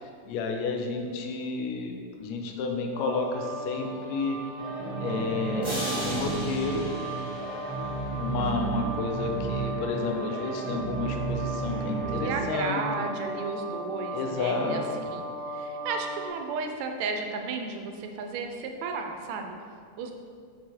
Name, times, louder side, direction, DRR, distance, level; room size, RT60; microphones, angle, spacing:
voice 1, 0.3-1.9 2.2-4.4 5.0-6.9 8.2-12.8 14.1-15.1, left 4 dB, 75° left, 2 dB, 1.8 m, -31 dB
sound 1, 2.9-16.3, right 1 dB, 55° right, 1.3 m, -37 dB
sound 2, 4.6-12.4, right 5 dB, 10° left, 0.6 m, -34 dB
sound 3, 5.6-8.3, equal, 15° right, 1.1 m, -37 dB
voice 2, 12.2-20.1, right 4 dB, 80° right, 4 dB, 1.9 m, -34 dB
7.5 x 4.0 x 4.4 m, 2.1 s
omnidirectional pair, 3.4 m